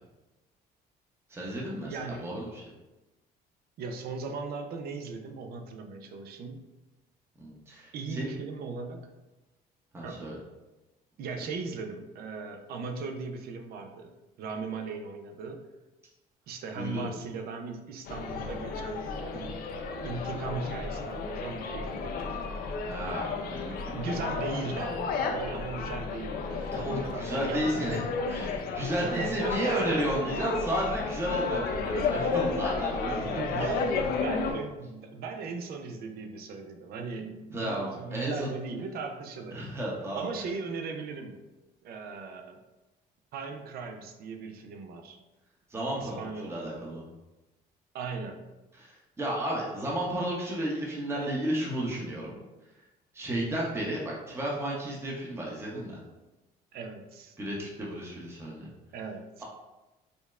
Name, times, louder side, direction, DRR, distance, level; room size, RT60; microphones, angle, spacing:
voice 1, 1.3-2.6 7.4-8.3 9.9-10.4 16.8-17.1 22.9-24.1 26.7-33.8 37.5-38.5 39.5-40.3 45.7-46.2 46.5-47.0 49.2-52.4 53.1-56.0 57.4-58.7, right 1 dB, 15° right, -4 dB, 0.8 m, -33 dB
voice 2, 1.8-2.4 3.8-6.6 7.9-9.1 10.0-10.2 11.2-15.7 16.5-19.7 20.0-22.2 23.9-27.9 29.0-30.2 31.3-31.4 32.4-32.5 33.1-39.6 40.1-41.4 41.8-42.6 43.3-45.2 45.9-46.6 47.9-48.4 56.7-57.3 58.9-59.4, right 4 dB, 65° right, 5 dB, 0.5 m, -38 dB
sound 1, 18.1-34.5, left 4 dB, 65° left, 0.5 m, -33 dB
5.1 x 2.1 x 2.4 m, 1.0 s
cardioid pair, 110°, 17 cm